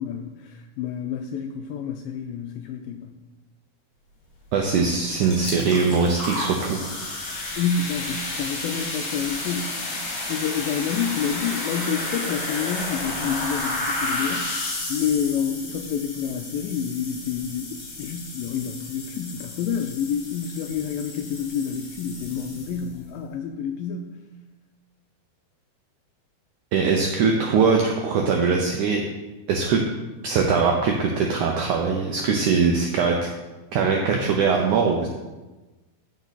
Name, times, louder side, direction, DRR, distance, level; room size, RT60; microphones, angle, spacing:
voice 1, 0.0-3.1 7.6-9.8 10.3-14.6 14.9-24.2, left 7 dB, 85° left, 5 dB, 2.0 m, -28 dB
voice 2, 4.5-6.8 26.7-29.0 29.5-29.8 30.2-33.2 33.7-35.1, right 5 dB, 80° right, 1 dB, 1.7 m, -21 dB
sound 1, 4.9-5.0 5.2-23.0, left 2 dB, 55° left, 4.2 m, -32 dB
15.0 x 5.3 x 4.1 m, 1.2 s
omnidirectional pair, 4.5 m